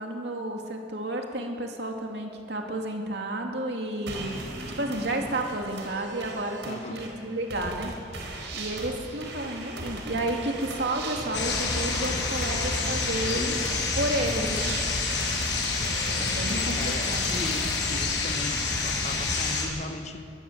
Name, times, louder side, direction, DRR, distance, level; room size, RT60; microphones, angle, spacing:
voice 1, 0.0-7.9 8.5-13.6 14.0-14.7 16.1-17.4, right 1 dB, 65° right, 2 dB, 2.8 m, -31 dB
sound 1, 4.1-17.8, right 2 dB, 80° right, 4.1 m, -39 dB
voice 2, 6.6-7.0 13.4-13.8 16.5-20.2, left 2 dB, 40° left, 6 dB, 1.2 m, -38 dB
sound 2, 11.3-19.6, left 3 dB, 75° left, 6.2 m, -28 dB
22.5 x 18.5 x 7.6 m, 2.6 s
head